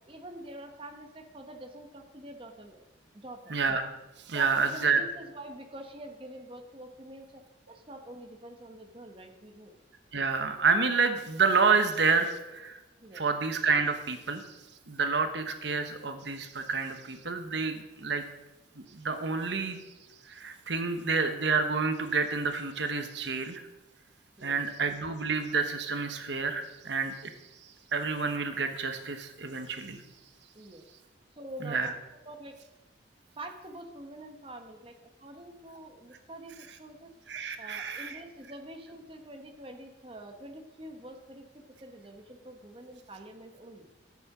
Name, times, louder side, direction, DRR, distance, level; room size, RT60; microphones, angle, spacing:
voice 1, 0.1-2.8 3.1-3.6 4.3-9.7 13.0-13.2 24.4-24.5 30.5-30.9 31.4-31.9 32.2-32.6 33.3-37.1 37.6-43.9, right 1 dB, 30° right, 4 dB, 1.2 m, -46 dB
voice 2, 3.5-3.9 4.3-5.0 10.1-12.8 13.1-14.6 14.9-18.2 18.9-19.8 20.2-23.6 24.4-27.3 27.6-30.0 31.6-31.9 37.3-38.2, right 4 dB, 65° right, 7 dB, 1.1 m, -29 dB
13.5 x 8.3 x 6.1 m, 1.1 s
head